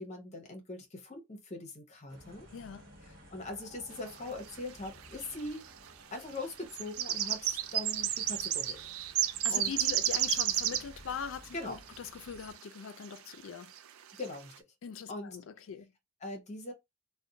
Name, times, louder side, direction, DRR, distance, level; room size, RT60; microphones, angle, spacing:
voice 1, 0.0-2.5 3.1-5.6 6.1-8.8 9.5-9.7 11.5-11.8 14.1-14.5 15.1-15.4 16.2-16.7, left 2 dB, 35° left, 0.8 m, -41 dB
sound 1, 2.1-12.6, equal, 50° right, 1.2 m, -56 dB
voice 2, 2.5-2.9 9.2-13.7 14.8-15.9, left 7 dB, 65° left, 0.4 m, -41 dB
sound 2, 4.5-4.6 4.9-5.5 6.3-11.0 11.9-12.0 12.5-12.6 13.0-13.3 13.7-13.8 14.1-14.4, right 11 dB, 80° right, 0.4 m, -31 dB
2.5 x 2.1 x 3.8 m
head